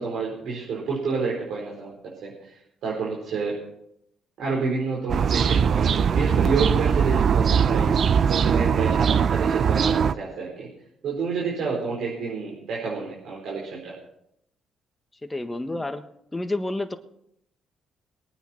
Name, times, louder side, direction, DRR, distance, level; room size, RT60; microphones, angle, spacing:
voice 1, 0.0-1.9 2.2-3.5 4.4-10.7 11.0-13.9, right 4 dB, 75° right, -4 dB, 4.5 m, -29 dB
sound 1, 5.1-10.1, right 7 dB, 55° right, 0.6 m, -21 dB
voice 2, 15.2-16.0 16.3-17.0, left 2 dB, 15° left, 8 dB, 1.5 m, -29 dB
22.5 x 9.2 x 4.5 m, 0.76 s
cardioid pair, 90°, 0 cm